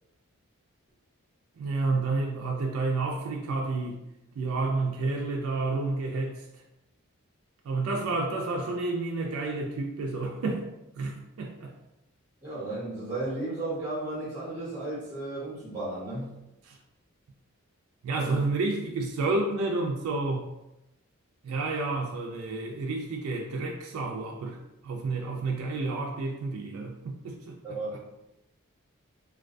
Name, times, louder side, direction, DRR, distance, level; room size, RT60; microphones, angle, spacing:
voice 1, 1.6-4.0 4.4-6.4 7.7-10.6 11.0-11.7 16.6-16.8 18.0-20.5 21.4-24.6 24.8-27.6, right 3 dB, 75° right, 1 dB, 0.3 m, -30 dB
voice 2, 12.4-16.3 18.1-18.3 27.6-28.0, right 2 dB, 10° right, -12 dB, 0.8 m, -34 dB
2.3 x 2.2 x 2.5 m, 0.92 s
head